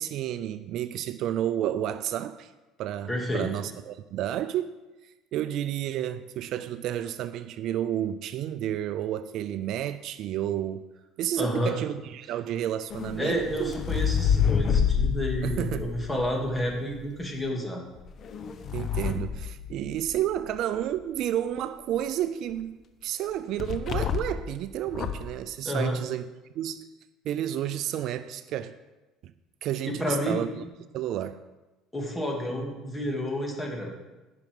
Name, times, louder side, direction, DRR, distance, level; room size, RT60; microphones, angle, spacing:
voice 1, 0.0-2.5 2.8-4.7 5.0-10.9 11.2-13.7 15.4-15.9 18.7-26.3 26.5-26.8 27.2-28.8 29.2-29.3 29.6-30.5 30.9-31.4, right 11 dB, 60° right, 0.5 m, -31 dB
voice 2, 3.1-3.5 11.4-11.8 13.2-17.8 25.6-26.0 29.8-30.5 31.9-33.9, equal, 10° left, 2.7 m, -30 dB
sound 1, 12.9-17.0 18.0-20.3 23.6-24.5 24.9-25.4, left 7 dB, 45° left, 0.9 m, -28 dB
15.5 x 6.0 x 5.4 m
cardioid pair, 115°, 0 cm